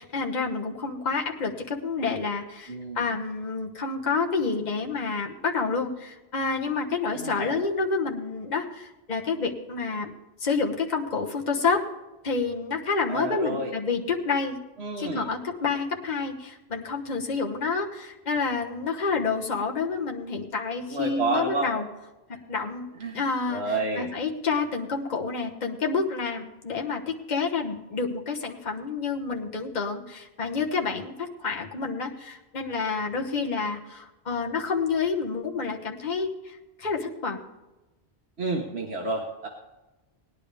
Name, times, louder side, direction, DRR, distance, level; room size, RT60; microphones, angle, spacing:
voice 1, 0.0-10.1 10.4-11.8 12.2-14.6 15.0-21.8 22.5-22.9 23.1-23.6 23.9-37.4, left 4 dB, 45° left, 0 dB, 1.3 m, -29 dB
voice 2, 2.7-3.0 7.1-7.7 13.1-13.7 14.8-15.3 20.9-21.7 23.0-23.2 23.5-24.1 38.4-39.5, right 2 dB, 80° right, 0 dB, 1.6 m, -30 dB
18.5 x 10.5 x 3.4 m, 1.1 s
omnidirectional pair, 1.1 m